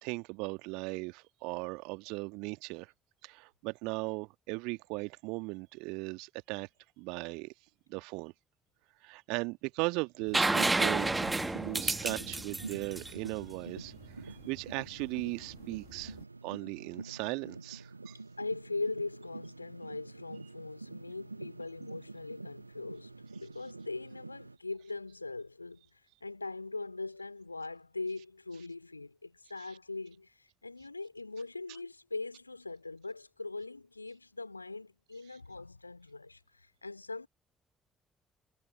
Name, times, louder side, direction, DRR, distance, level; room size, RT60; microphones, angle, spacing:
voice 1, 0.0-2.9 3.2-6.7 7.0-7.5 7.9-8.3 9.0-11.1 11.5-16.1 16.4-18.2, right 27 dB, 65° right, 1.6 m, -38 dB
sound 1, 10.2-24.6, right 3 dB, 85° right, 1.2 m, -47 dB
sound 2, 10.3-14.0 15.9-16.0, right 2 dB, 20° right, 1.3 m, -30 dB
voice 2, 18.4-37.3, left 3 dB, 85° left, 2.5 m, -41 dB
figure-of-eight pair, 45°, 0 cm